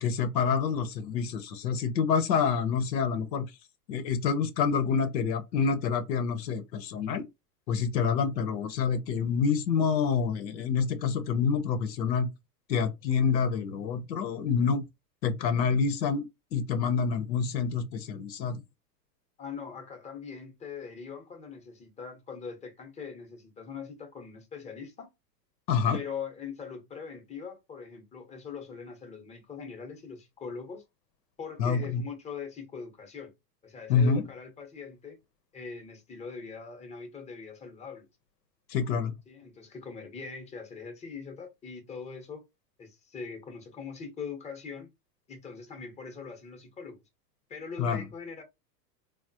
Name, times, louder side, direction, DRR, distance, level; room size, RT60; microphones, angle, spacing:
voice 1, 0.0-3.4 3.9-7.2 7.7-12.3 12.7-14.8 15.2-16.2 16.5-18.6 25.7-26.0 31.6-32.0 33.9-34.2 38.7-39.1 47.8-48.1, left 6 dB, 85° left, 0.8 m, -27 dB
voice 2, 19.4-25.1 25.9-30.8 31.4-33.3 33.6-35.2 35.5-38.1 39.3-42.4 42.8-44.9 45.3-47.0 47.5-48.4, left 5 dB, 15° left, 0.7 m, -42 dB
3.5 x 2.1 x 2.6 m
hypercardioid pair, 115°, 49 cm